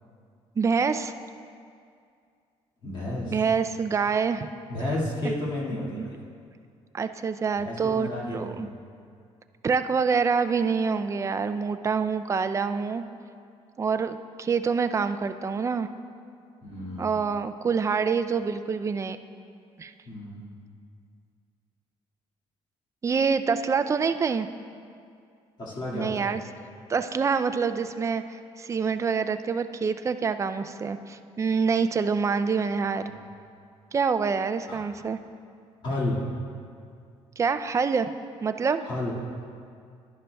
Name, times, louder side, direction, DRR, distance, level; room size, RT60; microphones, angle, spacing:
voice 1, 0.6-1.1 3.3-4.5 5.9-6.1 6.9-8.7 9.6-13.0 13.8-15.9 17.0-19.2 19.8-19.9 23.0-24.5 25.9-26.4 26.9-33.0 33.9-35.2 37.4-38.1 38.4-38.8, right 5 dB, 25° right, 10 dB, 0.3 m, -26 dB
voice 2, 2.8-3.4 4.7-6.2 7.6-8.8 16.6-17.1 20.1-20.5 25.6-26.3 33.0-33.1 34.7-34.8 35.8-36.2 38.8-39.1, left 1 dB, 40° left, -6 dB, 1.9 m, -32 dB
11.5 x 11.0 x 2.2 m, 2.3 s
cardioid pair, 120°, 12 cm